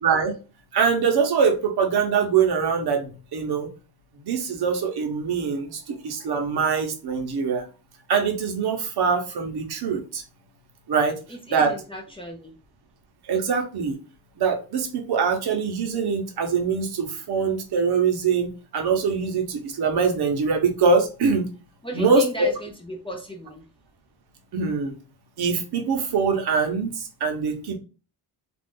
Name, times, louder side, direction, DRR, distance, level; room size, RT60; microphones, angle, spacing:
voice 1, 0.0-0.4 0.7-3.7 4.2-7.6 8.1-10.2 10.9-11.2 11.5-11.7 13.3-14.0 14.4-21.4 21.9-22.5 24.5-25.0 25.4-27.8, right 5 dB, 65° right, 4 dB, 0.8 m, -23 dB
voice 2, 11.3-12.5 21.8-23.7, equal, 15° left, 0 dB, 0.4 m, -35 dB
2.5 x 2.4 x 3.6 m, 0.33 s
wide cardioid pair, 165°, 41 cm